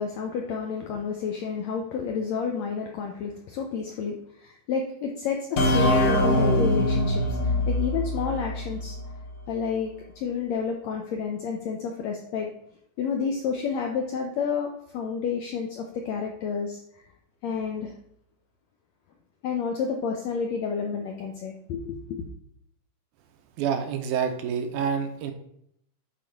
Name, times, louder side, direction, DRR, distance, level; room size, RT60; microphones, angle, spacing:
voice 1, 0.0-7.4 7.7-8.9 9.5-9.9 10.2-12.5 13.0-17.0 17.4-17.9 19.4-22.3, left 6 dB, 80° left, 2 dB, 1.6 m, -30 dB
sound 1, 5.6-9.1, left 1 dB, 60° left, 2.2 m, -23 dB
voice 2, 23.6-25.3, right 7 dB, 80° right, 6 dB, 2.2 m, -27 dB
8.9 x 4.1 x 4.6 m, 0.73 s
omnidirectional pair, 3.8 m